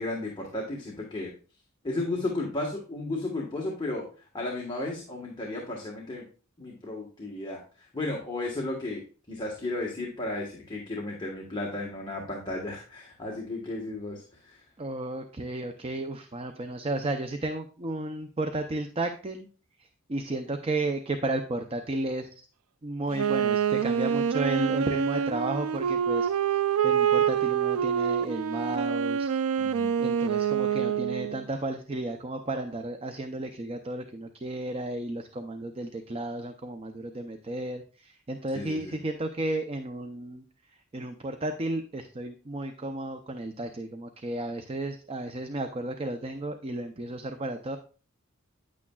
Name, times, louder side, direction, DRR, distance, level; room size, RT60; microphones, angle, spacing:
voice 1, 0.0-1.3 1.8-4.1 4.3-6.2 6.6-14.6 29.6-29.9 38.5-38.9, left 2 dB, 20° left, -1 dB, 1.3 m, -34 dB
voice 2, 14.8-19.5 19.8-22.5 22.8-26.3 26.8-29.4 30.0-40.4 40.9-47.8, right 2 dB, 30° right, 6 dB, 0.5 m, -33 dB
Wind instrument woodwind instrument, 23.1-31.4, right 8 dB, 75° right, 0.4 m, -26 dB
9.6 x 8.5 x 2.3 m, 0.38 s
head